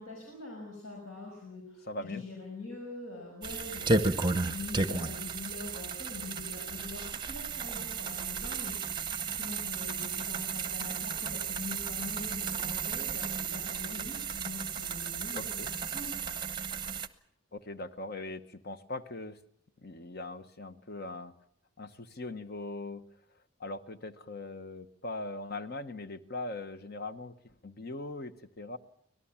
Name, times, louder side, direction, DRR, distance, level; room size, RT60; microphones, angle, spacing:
voice 1, 0.0-15.5 15.9-16.4, left 3 dB, 70° left, -1 dB, 6.1 m, -44 dB
voice 2, 1.9-2.2 15.3-15.7 17.5-19.4 19.8-21.3 21.8-23.0 23.6-28.8, left 2 dB, 45° left, 10 dB, 1.1 m, -40 dB
sound 1, 3.4-17.1, right 4 dB, 20° right, 0.8 m, -34 dB
25.0 x 18.5 x 7.3 m, 0.67 s
head